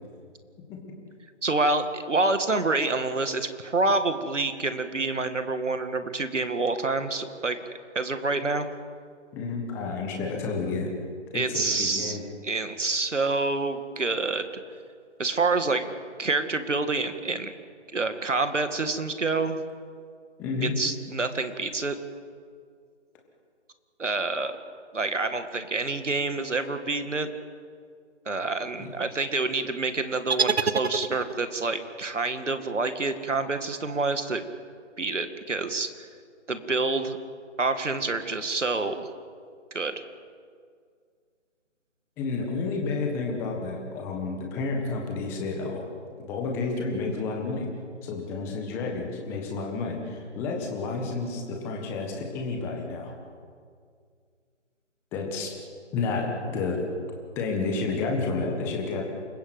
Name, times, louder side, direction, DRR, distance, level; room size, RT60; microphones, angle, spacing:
voice 1, 1.4-7.6 7.9-8.7 11.3-14.5 15.2-15.8 16.2-17.5 17.9-19.6 20.6-22.0 24.0-24.6 24.9-27.3 28.3-34.4 35.0-35.9 36.5-37.2 37.6-39.1 39.7-39.9, right 3 dB, 80° right, 8 dB, 2.3 m, -27 dB
voice 2, 9.3-10.9 11.3-12.2 20.4-20.7 28.8-28.9 42.2-45.8 46.2-47.7 48.0-53.1 55.1-55.5 55.9-56.8 57.3-59.0, left 4 dB, 5° left, 1 dB, 1.5 m, -30 dB
sound 1, 30.3-31.6, right 5 dB, 60° right, 1.1 m, -27 dB
28.5 x 16.0 x 8.0 m, 2.1 s
figure-of-eight pair, 160°, 36 cm